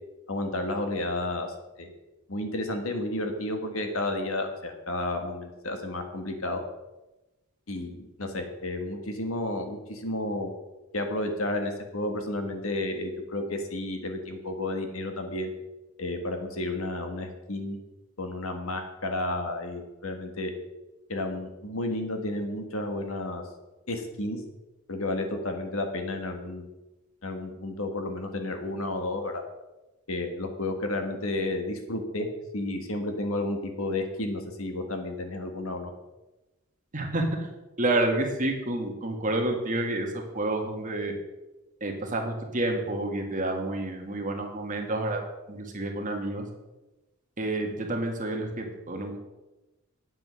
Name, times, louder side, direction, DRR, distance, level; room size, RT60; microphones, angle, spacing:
voice 1, 0.3-1.9 2.3-6.6 7.7-10.5 10.9-15.5 16.0-17.8 18.2-20.5 21.1-23.4 23.9-24.4 24.9-26.7 27.2-29.4 30.1-32.3 32.5-35.9, left 1 dB, 70° left, 5 dB, 1.7 m, -32 dB
voice 2, 36.9-37.3 37.8-40.1 40.3-41.1 41.8-45.2 45.5-46.4 47.4-49.2, right 2 dB, 40° right, 2 dB, 1.9 m, -29 dB
9.4 x 7.8 x 6.3 m, 1.0 s
head